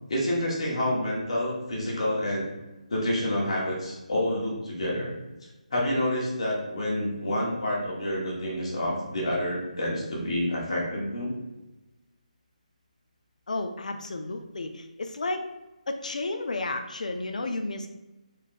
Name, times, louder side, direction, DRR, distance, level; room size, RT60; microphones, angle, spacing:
voice 1, 0.1-2.5 2.9-5.1 5.7-11.3, left 1 dB, 45° left, -4 dB, 1.5 m, -28 dB
voice 2, 13.5-15.5 15.9-17.9, left 2 dB, 65° left, 5 dB, 0.5 m, -32 dB
4.1 x 3.2 x 3.8 m, 1.1 s
hypercardioid pair, 175°, 4 cm